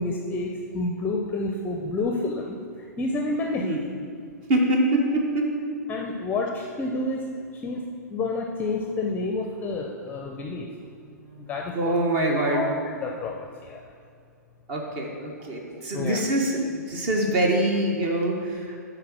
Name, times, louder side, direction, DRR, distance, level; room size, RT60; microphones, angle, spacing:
voice 1, 0.0-3.7 5.9-7.2 7.5-7.8 8.1-10.7 11.4-12.0 12.5-13.8 15.9-16.2, left 2 dB, 15° left, 1 dB, 0.6 m, -29 dB
voice 2, 4.5-5.5 11.3-11.5 11.7-12.6 14.7-18.8, right 1 dB, 40° right, 1 dB, 1.2 m, -24 dB
8.6 x 4.0 x 6.1 m, 2.4 s
figure-of-eight pair, 110°, 9 cm